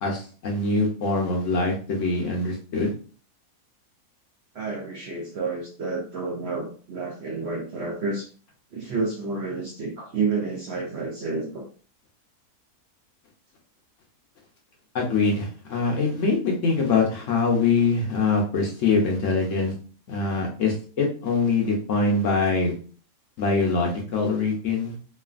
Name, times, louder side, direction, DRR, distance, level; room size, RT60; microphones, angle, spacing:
voice 1, 0.0-2.9 14.9-19.7 20.1-22.7 23.4-25.0, left 3 dB, 60° left, 0 dB, 0.9 m, -23 dB
voice 2, 4.5-8.3 8.7-11.6, right 4 dB, 60° right, -1 dB, 0.7 m, -30 dB
3.1 x 2.4 x 2.4 m, 0.40 s
omnidirectional pair, 1.6 m